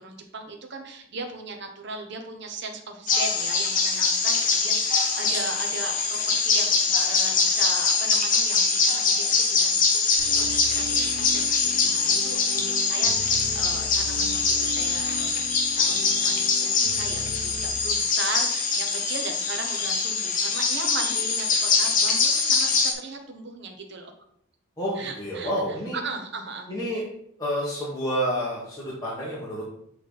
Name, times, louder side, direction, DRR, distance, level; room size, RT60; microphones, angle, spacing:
voice 1, 0.0-24.1 24.9-26.7, right 3 dB, 55° right, 4 dB, 0.9 m, -37 dB
sound 1, 3.1-22.9, left 4 dB, 35° left, 0.8 m, -23 dB
sound 2, 10.2-17.8, right 2 dB, 80° right, 2.1 m, -38 dB
voice 2, 24.8-26.0 26.7-27.0 27.4-29.6, equal, 15° left, -6 dB, 1.3 m, -29 dB
7.5 x 3.5 x 3.9 m, 0.70 s
head